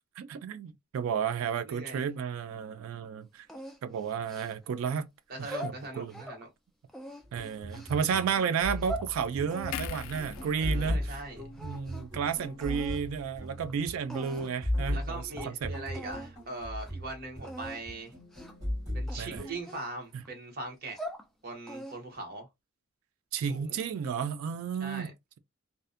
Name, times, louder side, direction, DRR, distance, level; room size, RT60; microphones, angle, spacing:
voice 1, 0.2-3.5 3.8-5.1 5.4-6.2 7.3-11.2 11.6-15.7 19.2-19.5 23.3-25.1, right 7 dB, 80° right, 0.3 m, -32 dB
voice 2, 1.6-2.0 5.3-6.5 10.6-11.6 14.9-18.1 18.9-21.0 21.4-22.5 23.4-23.8 24.8-25.1, right 2 dB, 45° right, 0.8 m, -41 dB
sound 1, 3.5-4.8 5.3-6.4 6.9-8.0 8.6-9.1 9.5-11.3 11.5-12.2 12.6-13.0 13.7-13.8 14.1-14.6 15.0-15.1 15.4-15.5 15.9-16.3 16.7-16.9 17.4-17.8 18.3-18.6 19.1-20.3 20.7-21.3 21.7-22.2, right 1 dB, ahead, 0.3 m, -42 dB
sound 2, 7.2-19.6, left 1 dB, 15° right, 1.3 m, -37 dB
sound 3, 9.7-13.1 13.4-13.6, left 7 dB, 90° left, 0.4 m, -44 dB
2.5 x 2.0 x 2.4 m
head